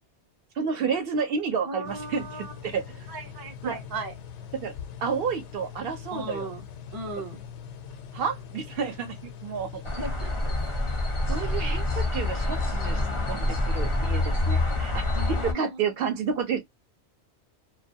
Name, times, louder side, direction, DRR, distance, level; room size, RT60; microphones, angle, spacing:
voice 1, 0.6-2.3 2.6-2.9 3.6-3.8 4.6-4.7 5.0-6.5 8.1-9.8 11.3-13.0 13.3-15.0 15.3-16.7, right 6 dB, 65° right, 0.7 m, -30 dB
voice 2, 1.7-2.5 3.1-4.1 6.1-6.6 6.9-7.4 10.0-10.5 12.7-13.6 15.1-15.8, right 2 dB, 30° right, 0.4 m, -37 dB
sound 1, 1.8-15.1, left 7 dB, 85° left, 0.9 m, -43 dB
sound 2, 9.8-15.5, left 2 dB, 40° left, 0.5 m, -27 dB
2.2 x 2.2 x 2.5 m
omnidirectional pair, 1.2 m